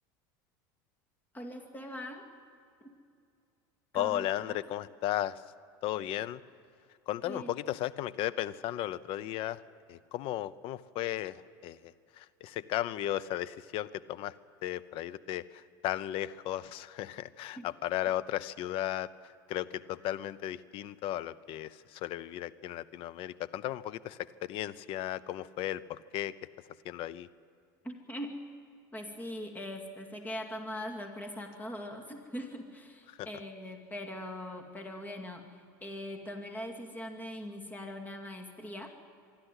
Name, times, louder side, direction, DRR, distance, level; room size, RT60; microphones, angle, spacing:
voice 1, 1.3-2.3 2.8-2.9 3.9-4.6 7.2-7.6 17.6-17.7 27.8-28.4 28.9-38.9, left 1 dB, 15° left, 3 dB, 2.3 m, -41 dB
voice 2, 3.9-5.4 5.8-6.4 7.1-9.6 9.9-14.3 14.6-26.3 26.8-27.3 33.1-33.3, left 13 dB, 55° left, 17 dB, 0.7 m, -35 dB
25.0 x 12.0 x 9.8 m, 2.4 s
supercardioid pair, 95°, 11 cm